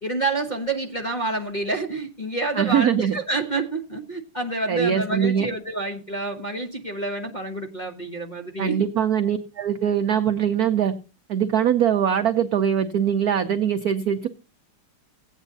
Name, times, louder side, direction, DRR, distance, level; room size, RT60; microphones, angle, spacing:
voice 1, 0.0-8.9, right 2 dB, 30° left, -1 dB, 0.8 m, -28 dB
voice 2, 2.6-3.2 4.7-5.5 8.6-10.9 11.3-14.3, right 9 dB, 75° right, 9 dB, 0.8 m, -22 dB
17.0 x 9.0 x 2.7 m, 0.30 s
omnidirectional pair, 2.4 m